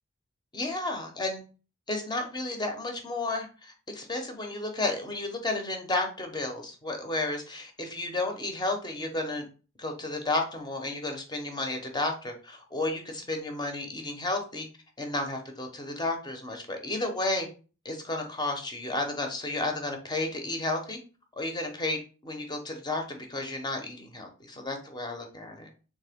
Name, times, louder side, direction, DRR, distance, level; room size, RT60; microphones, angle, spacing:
voice 1, 0.5-1.4 1.9-9.5 9.8-14.7 15.0-17.5 17.8-21.0 21.4-25.7, left 2 dB, 20° left, 4 dB, 0.8 m, -32 dB
3.7 x 3.2 x 3.4 m, 0.36 s
head